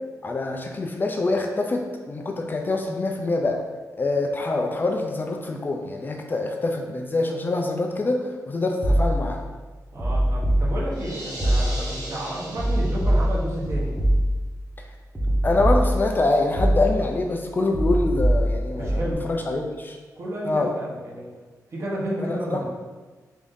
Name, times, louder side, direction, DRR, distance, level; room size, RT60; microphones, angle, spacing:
voice 1, 0.2-3.6 4.0-9.4 15.4-20.0 20.4-20.7 22.3-22.6, left 2 dB, 30° left, 2 dB, 0.4 m, -25 dB
sound 1, 8.8-9.4 10.0-11.1 11.4-12.0 12.6-14.6 15.1-16.2 16.6-17.2 17.7-19.1, equal, 10° right, 0.8 m, -23 dB
voice 2, 9.9-13.9 18.8-19.3 20.1-21.3 21.7-22.6, right 1 dB, 45° right, -5 dB, 1.0 m, -31 dB
sound 2, 10.9-13.4, right 1 dB, 75° right, 1.0 m, -37 dB
3.6 x 2.6 x 3.5 m, 1.3 s
cardioid pair, 100°, 6 cm